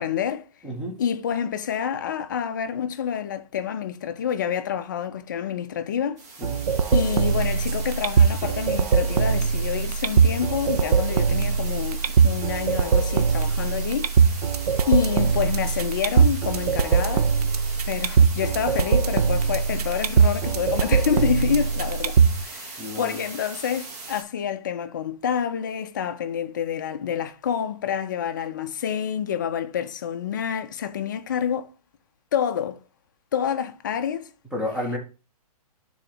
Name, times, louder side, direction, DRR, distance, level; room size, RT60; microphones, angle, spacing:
voice 1, 0.0-0.5 1.0-6.2 6.9-14.1 14.9-17.3 17.9-31.7 32.3-32.8 33.3-34.3, left 8 dB, 30° left, 0.4 m, -28 dB
voice 2, 0.6-1.0 6.4-6.6 22.8-23.2 34.5-35.0, left 1 dB, 5° right, 0.7 m, -30 dB
sound 1, 6.2-24.2, right 3 dB, 25° right, 1.0 m, -39 dB
sound 2, 6.4-22.4, right 6 dB, 80° right, 0.6 m, -21 dB
11.0 x 3.9 x 2.8 m
hypercardioid pair, 170°, 20 cm